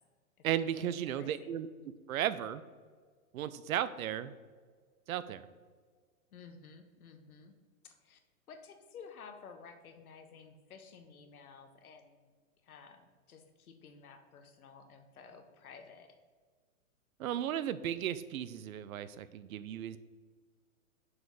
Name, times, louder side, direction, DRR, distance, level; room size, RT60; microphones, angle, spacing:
voice 1, 0.4-1.7 2.1-2.6 3.3-4.3 5.1-5.5 17.2-20.0, right 10 dB, 70° right, 14 dB, 0.6 m, -35 dB
voice 2, 1.2-1.5 6.3-7.5 7.8-8.2 8.5-12.3 12.6-16.2, left 5 dB, 80° left, 7 dB, 1.0 m, -53 dB
6.3 x 5.0 x 3.8 m, 1.5 s
hypercardioid pair, 135°, 43 cm